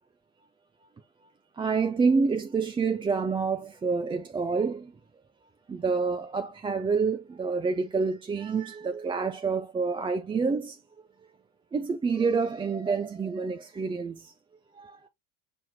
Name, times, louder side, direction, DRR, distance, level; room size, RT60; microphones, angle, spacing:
voice 1, 1.6-4.9 5.7-10.8 11.7-14.3 14.8-15.0, right 4 dB, 10° right, 0.3 m, -28 dB
6.9 x 2.9 x 2.2 m
figure-of-eight pair, 60°, 45 cm